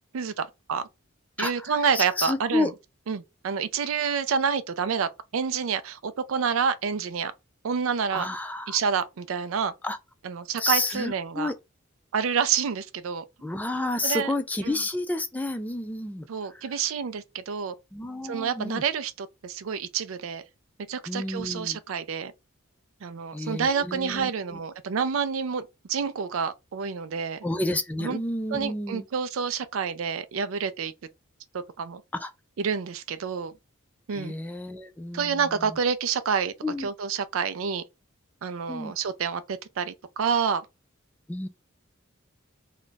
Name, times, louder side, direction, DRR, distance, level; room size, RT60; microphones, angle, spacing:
voice 1, 0.1-0.9 1.4-2.7 3.1-7.3 7.6-8.3 8.7-9.7 10.2-11.5 12.1-13.2 14.0-14.3 14.6-14.7 16.3-17.7 18.2-20.4 20.9-22.3 23.0-25.6 25.9-27.4 28.0-28.2 28.5-30.9 31.8-32.0 32.6-33.5 34.1-34.3 35.1-36.5 36.8-37.8 38.4-40.7, right 6 dB, 80° right, 0.4 m, -28 dB
voice 2, 1.4-2.7 8.1-8.8 9.8-10.0 10.6-11.5 13.4-16.7 17.9-18.8 21.1-21.8 23.3-24.6 27.4-29.1 32.1-32.3 34.1-35.8 36.6-36.9 38.7-38.9 41.3-41.5, left 2 dB, 10° left, 0.3 m, -31 dB
2.4 x 2.1 x 3.8 m
head